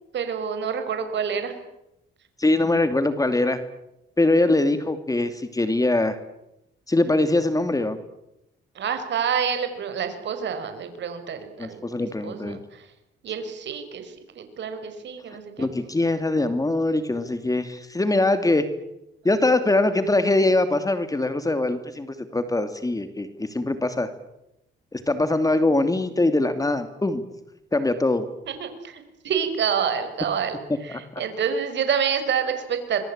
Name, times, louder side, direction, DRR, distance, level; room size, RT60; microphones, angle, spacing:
voice 1, 0.1-1.6 8.8-12.8 13.2-15.7 28.5-33.0, right 7 dB, 65° right, 8 dB, 5.4 m, -28 dB
voice 2, 2.4-3.6 4.2-6.2 6.9-8.0 11.6-12.6 15.6-18.6 19.2-24.1 24.9-27.2 27.7-28.3, left 2 dB, 15° left, 9 dB, 2.6 m, -22 dB
26.5 x 22.5 x 8.9 m, 0.86 s
cardioid pair, 90°, 20 cm